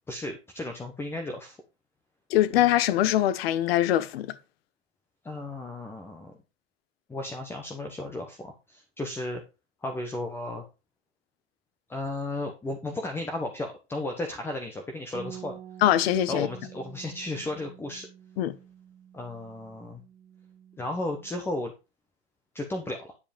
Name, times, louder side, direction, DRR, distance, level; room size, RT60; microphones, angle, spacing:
voice 1, 0.1-1.6 5.2-6.3 7.1-9.4 9.8-10.6 11.9-15.6 16.3-18.1 19.1-20.0 20.8-21.7 22.5-23.1, left 2 dB, 5° left, 1.0 m, -34 dB
voice 2, 2.3-4.3 15.8-16.5 18.4-18.5, left 13 dB, 55° left, 1.2 m, -23 dB
Bass guitar, 15.1-21.4, right 9 dB, 20° right, 1.5 m, -47 dB
9.9 x 5.1 x 5.2 m
hypercardioid pair, 145°, 35 cm